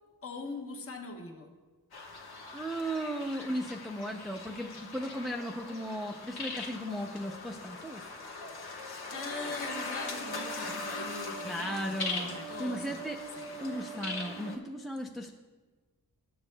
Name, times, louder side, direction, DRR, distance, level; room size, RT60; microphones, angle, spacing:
voice 1, 0.2-1.5 9.1-13.0 13.4-13.7, left 4 dB, 35° left, 2 dB, 1.0 m, -42 dB
sound 1, 1.9-14.6, left 3 dB, 80° left, 1.2 m, -41 dB
voice 2, 2.5-8.0 11.4-13.2 13.6-15.3, equal, ahead, 2 dB, 0.4 m, -36 dB
sound 2, 9.1-14.6, right 5 dB, 80° right, 0.6 m, -44 dB
14.0 x 7.9 x 2.2 m, 1.3 s
wide cardioid pair, 105°, 38 cm